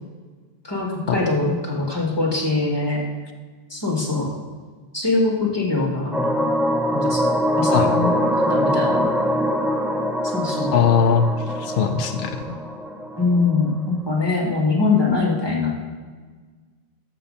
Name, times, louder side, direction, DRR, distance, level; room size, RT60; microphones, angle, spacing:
voice 1, 0.6-3.0 3.7-4.3 4.9-6.1 6.9-7.2 7.6-8.1 8.5-9.1 10.3-10.8 13.2-15.9, left 3 dB, 25° left, -2 dB, 2.3 m, -22 dB
sound 1, 6.1-13.7, equal, ahead, 0.4 m, -23 dB
voice 2, 10.7-12.6, left 6 dB, 85° left, 7 dB, 0.9 m, -20 dB
13.5 x 6.5 x 4.2 m, 1.4 s
omnidirectional pair, 1.0 m